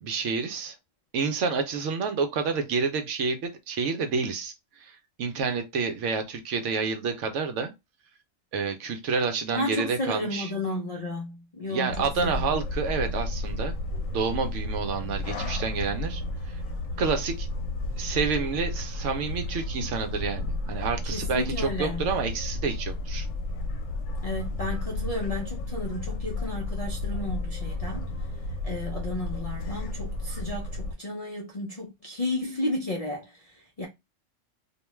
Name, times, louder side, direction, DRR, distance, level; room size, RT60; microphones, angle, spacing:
voice 1, 0.0-0.7 1.1-4.5 4.8-7.7 8.5-10.5 11.7-13.7 14.1-16.2 16.5-16.6 17.0-17.5 18.0-23.3, right 5 dB, 70° right, 0.9 m, -29 dB
voice 2, 9.5-12.6 21.0-22.1 24.2-28.1 28.6-33.8, left 2 dB, 50° left, 0.4 m, -33 dB
sound 1, 11.9-30.9, left 2 dB, 85° left, 1.0 m, -32 dB
2.5 x 2.2 x 3.0 m
omnidirectional pair, 1.3 m